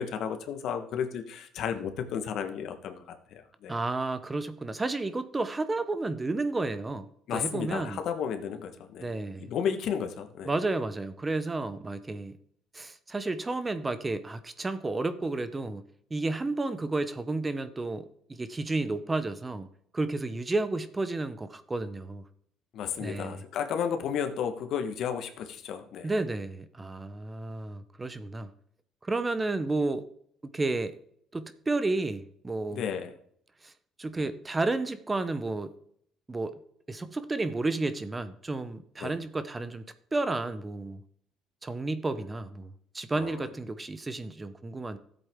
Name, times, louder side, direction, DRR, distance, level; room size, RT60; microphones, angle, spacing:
voice 1, 0.0-3.8 7.3-10.5 22.7-26.1 32.7-33.1 39.0-39.2 43.1-43.5, left 7 dB, 60° left, 7 dB, 1.3 m, -33 dB
voice 2, 3.7-8.0 9.0-9.5 10.4-12.3 12.7-15.8 16.1-19.7 19.9-22.2 23.0-23.4 26.0-28.5 29.0-30.0 30.5-30.9 31.3-32.9 33.6-33.7 34.0-35.7 36.3-36.5 36.9-39.8 40.1-41.0 41.6-45.0, right 2 dB, 15° right, 12 dB, 0.8 m, -31 dB
13.5 x 8.0 x 3.7 m, 0.66 s
cardioid pair, 115°, 0 cm